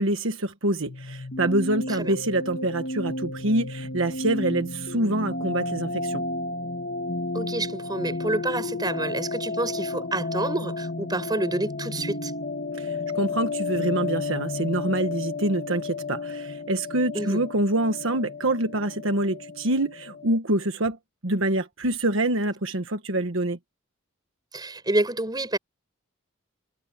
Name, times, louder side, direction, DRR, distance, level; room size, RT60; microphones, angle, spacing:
voice 1, 0.0-6.2 12.8-21.0 21.2-23.6, right 1 dB, 65° right, 1.4 m, -26 dB
sound 1, 0.9-20.4, left 3 dB, 50° left, 1.8 m, -32 dB
voice 2, 7.3-12.3 17.1-17.4 24.5-25.6, right 2 dB, 20° right, 6.4 m, -28 dB
head